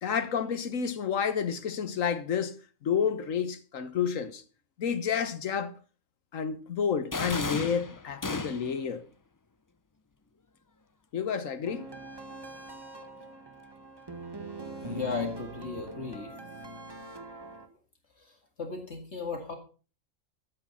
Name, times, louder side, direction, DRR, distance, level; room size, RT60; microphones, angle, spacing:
voice 1, 0.0-2.6 2.8-4.4 4.8-5.7 6.3-9.0 11.1-11.9, left 7 dB, 85° left, 1.6 m, -30 dB
sound 1, 7.1-8.9, left 3 dB, 30° left, 0.4 m, -34 dB
sound 2, 11.6-17.7, right 2 dB, 20° right, 1.7 m, -42 dB
voice 2, 14.8-16.3 18.2-19.5, left 4 dB, 60° left, 2.4 m, -36 dB
13.0 x 8.9 x 5.6 m
omnidirectional pair, 1.3 m